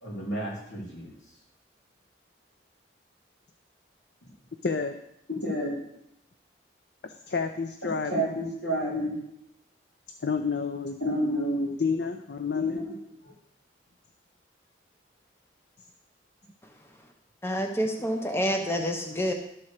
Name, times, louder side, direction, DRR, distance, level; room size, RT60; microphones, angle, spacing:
voice 1, 0.0-1.1 5.3-5.8 8.1-9.2 11.0-11.7 12.5-12.8, equal, 85° left, -4 dB, 3.5 m, -29 dB
voice 2, 4.6-5.0 7.0-8.3 10.2-11.0 11.8-12.8, left 5 dB, 65° left, 8 dB, 0.5 m, -30 dB
voice 3, 17.4-19.3, equal, 15° left, 4 dB, 0.6 m, -28 dB
12.0 x 4.3 x 6.5 m, 0.79 s
head